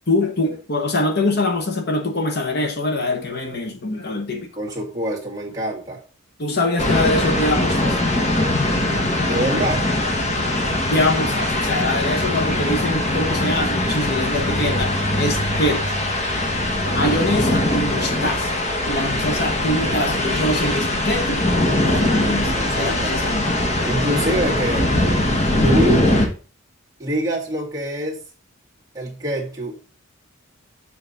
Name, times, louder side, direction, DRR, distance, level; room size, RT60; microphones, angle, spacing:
voice 1, 0.1-4.5 6.4-8.0 8.5-8.7 10.4-15.9 16.9-18.6 18.9-21.5 21.8-23.5, left 1 dB, 50° left, 1.0 m, -24 dB
voice 2, 4.6-6.0 9.2-9.9 22.2-24.9 25.6-26.1 27.0-28.2 28.9-29.8, right 1 dB, 15° right, 1.7 m, -26 dB
sound 1, 6.8-26.3, left 1 dB, 30° left, 1.2 m, -21 dB
7.1 x 5.1 x 4.0 m
head